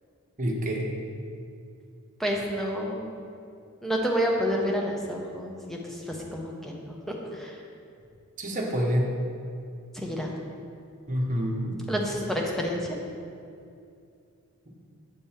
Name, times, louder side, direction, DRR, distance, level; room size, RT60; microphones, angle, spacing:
voice 1, 0.4-0.8 8.4-9.1 11.1-11.8 14.7-14.8, equal, 35° right, -1 dB, 1.0 m, -27 dB
voice 2, 2.2-3.1 3.8-7.6 9.9-10.3 11.9-12.8, equal, ahead, -1 dB, 0.8 m, -29 dB
8.2 x 5.3 x 4.4 m, 2.5 s
head